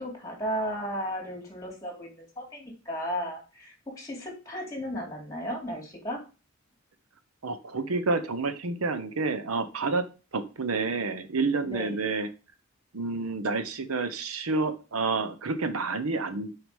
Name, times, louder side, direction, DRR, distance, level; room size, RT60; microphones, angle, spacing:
voice 1, 0.0-6.2 11.6-12.0, equal, 15° left, 1 dB, 2.5 m, -35 dB
voice 2, 7.4-10.1 10.3-12.3 12.9-16.5, right 3 dB, 90° right, 11 dB, 0.8 m, -29 dB
6.2 x 4.9 x 5.2 m, 0.32 s
head